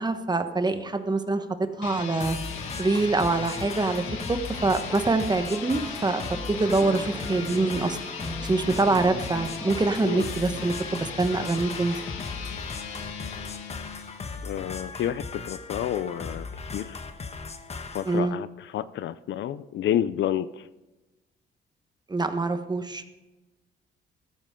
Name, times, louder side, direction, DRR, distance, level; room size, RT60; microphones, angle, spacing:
voice 1, 0.0-1.4 1.8-2.4 2.8-4.0 4.3-6.2 6.5-8.0 8.4-11.9 18.1-18.4 22.1-23.0, right 3 dB, 20° right, 8 dB, 1.3 m, -25 dB
sound 1, 1.7-14.5, left 6 dB, 90° left, 1.8 m, -38 dB
sound 2, 2.2-18.2, left 4 dB, 30° left, 1.3 m, -38 dB
sound 3, 4.9-11.3 12.8-12.9, left 1 dB, 10° left, 1.7 m, -41 dB
voice 2, 14.4-16.5 16.7-17.0 17.9-20.7, left 11 dB, 70° left, 15 dB, 0.6 m, -29 dB
14.0 x 14.0 x 3.8 m, 1.1 s
cardioid pair, 90°, 20 cm